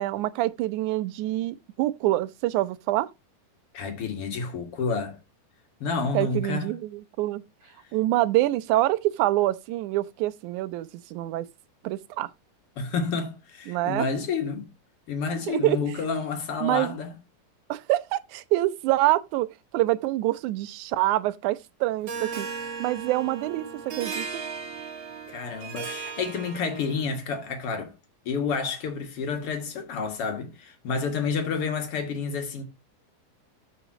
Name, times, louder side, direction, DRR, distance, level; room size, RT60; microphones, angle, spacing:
voice 1, 0.0-3.1 6.1-7.4 7.9-11.5 11.8-12.3 13.7-14.1 15.5-15.8 16.6-17.0 17.7-19.5 19.7-22.5 22.8-24.4, right 16 dB, 75° right, 2.0 m, -26 dB
voice 2, 3.7-5.2 5.8-6.7 12.8-14.7 15.1-17.1 25.3-27.9 28.3-32.6, left 5 dB, 50° left, 2.4 m, -29 dB
Harp, 22.1-27.1, right 5 dB, 40° right, 2.2 m, -36 dB
13.5 x 5.0 x 2.8 m
omnidirectional pair, 3.8 m